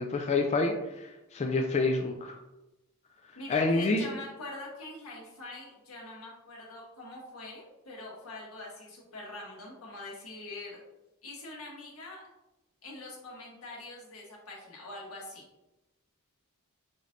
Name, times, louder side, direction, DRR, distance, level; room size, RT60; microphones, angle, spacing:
voice 1, 0.0-2.4 3.5-4.1, left 3 dB, 30° left, 2 dB, 0.3 m, -28 dB
voice 2, 3.3-10.8 11.2-12.2 12.8-15.4, left 2 dB, 85° left, -3 dB, 1.5 m, -44 dB
5.1 x 4.1 x 2.6 m, 0.98 s
head